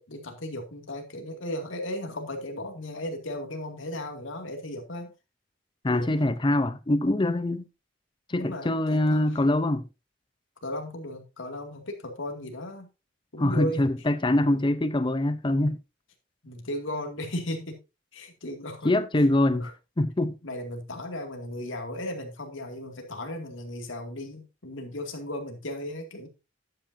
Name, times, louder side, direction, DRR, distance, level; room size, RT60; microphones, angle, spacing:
voice 1, 0.0-5.1 5.9-6.3 7.1-7.4 8.3-9.4 10.6-12.9 13.3-13.9 16.4-17.8 18.1-18.9 19.5-19.7 20.4-26.3, left 1 dB, 90° left, 2.3 m, -36 dB
voice 2, 5.8-7.6 8.3-9.8 13.4-15.8 18.8-19.7 20.0-20.4, left 1 dB, 25° left, 0.6 m, -24 dB
12.0 x 8.8 x 2.7 m
head